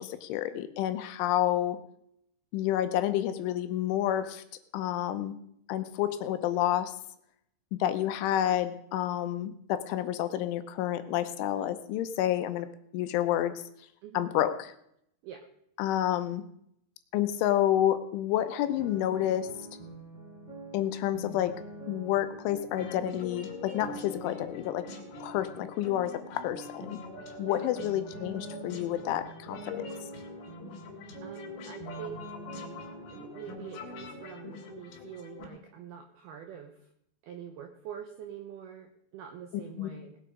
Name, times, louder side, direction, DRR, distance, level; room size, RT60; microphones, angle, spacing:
voice 1, 0.0-1.8 2.5-4.4 4.7-5.4 5.7-6.9 7.7-12.7 12.9-13.5 14.1-14.7 15.8-16.4 17.1-19.5 20.7-21.6 21.9-24.9 25.2-27.0 27.4-29.9 39.8-39.9, left 12 dB, 80° left, 10 dB, 3.1 m, -29 dB
sound 1, 18.6-34.2, right 1 dB, 20° right, 7.0 m, -45 dB
sound 2, 22.7-35.5, left 5 dB, 65° left, 4.3 m, -45 dB
voice 2, 27.4-27.7 31.2-32.2 33.1-36.8 37.2-40.2, right 9 dB, 80° right, 5 dB, 2.2 m, -45 dB
19.0 x 8.9 x 5.0 m, 0.72 s
omnidirectional pair, 5.8 m